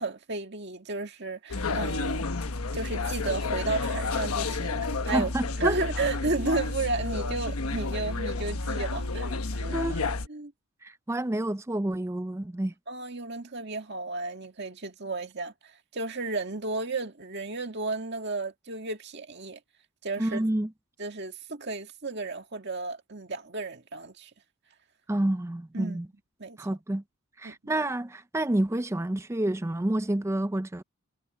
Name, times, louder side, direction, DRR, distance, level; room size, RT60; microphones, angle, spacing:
voice 1, 0.0-2.3 2.7-5.3 5.6-9.8 10.3-10.5 12.9-19.6 20.0-20.4 21.0-24.3 25.7-26.0 26.4-26.7 27.4-27.7, right 3 dB, 50° right, 2.1 m, -33 dB
sound 1, 1.5-10.3, left 3 dB, 80° left, 1.1 m, -31 dB
voice 2, 5.1-5.8 9.7-10.0 10.8-12.7 20.2-20.7 25.1-26.1 26.6-27.0 27.4-30.8, right 1 dB, 10° right, 0.4 m, -29 dB
head